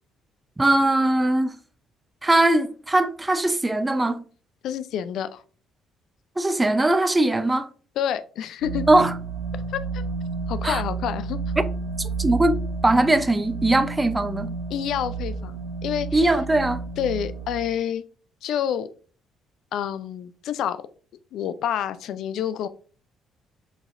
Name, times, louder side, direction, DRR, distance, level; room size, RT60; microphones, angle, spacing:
voice 1, 0.6-1.5 2.2-4.2 6.4-7.7 8.9-9.1 10.6-10.8 12.0-12.5 12.8-14.5 16.1-16.8, right 2 dB, 20° right, 0.6 m, -20 dB
voice 2, 4.6-5.4 8.0-8.8 9.7-10.0 10.5-11.4 14.7-16.3 17.0-18.0 18.4-18.9 19.7-20.8 21.3-22.7, left 9 dB, 65° left, 0.4 m, -28 dB
sound 1, 8.6-17.7, right 4 dB, 85° right, 0.9 m, -31 dB
4.7 x 4.0 x 2.5 m
hypercardioid pair, 50°, 0 cm